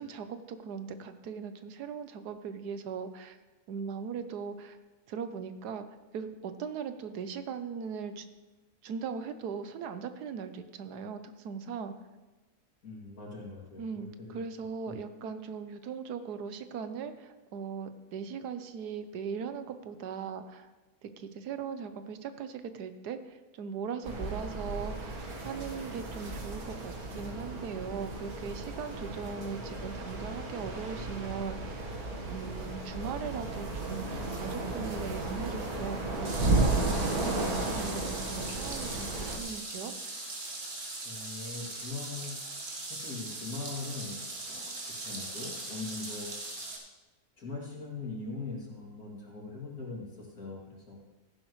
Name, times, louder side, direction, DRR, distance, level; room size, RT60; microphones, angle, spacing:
voice 1, 0.0-3.4 3.7-4.8 5.1-5.9 6.1-8.2 8.8-11.9 13.8-20.7 21.0-32.0 32.3-39.9, right 6 dB, 85° right, 10 dB, 1.4 m, -39 dB
voice 2, 12.8-14.4 14.9-15.0 41.0-42.3 42.9-44.2 44.4-44.7 45.0-46.3 47.4-51.0, left 3 dB, 65° left, -3 dB, 3.1 m, -41 dB
sound 1, 24.0-39.4, right 2 dB, 65° right, 2.0 m, -34 dB
sound 2, 36.2-46.8, right 2 dB, 45° right, 1.8 m, -40 dB
15.0 x 10.5 x 3.2 m, 1.2 s
omnidirectional pair, 1.7 m